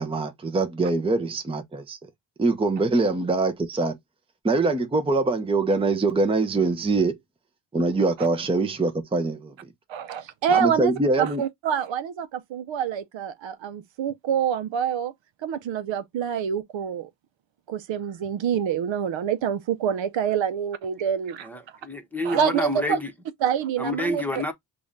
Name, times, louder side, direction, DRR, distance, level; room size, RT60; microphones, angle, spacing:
voice 1, 0.0-2.0 2.4-4.0 4.4-7.1 7.7-9.5 10.5-11.4, right 3 dB, 10° right, 0.7 m, -23 dB
voice 2, 9.9-15.1 15.4-17.1 17.7-21.5 22.2-23.0 23.4-24.4, right 8 dB, 70° right, 0.7 m, -26 dB
voice 3, 21.4-23.1 23.8-24.5, left 2 dB, 5° left, 1.1 m, -29 dB
6.8 x 2.5 x 2.6 m
cardioid pair, 95°, 47 cm